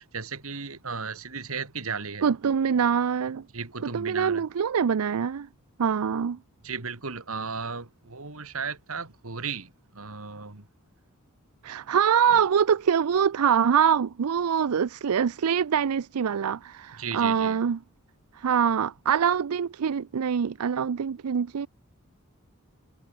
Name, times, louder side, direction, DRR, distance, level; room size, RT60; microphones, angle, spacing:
voice 1, 0.0-2.3 3.5-4.5 6.6-10.7 12.3-12.4 17.0-17.6, right 5 dB, 75° right, 2.3 m, -35 dB
voice 2, 2.2-3.4 3.8-5.5 5.8-6.4 11.6-17.8 18.3-21.7, right 7 dB, 90° right, 0.5 m, -24 dB
head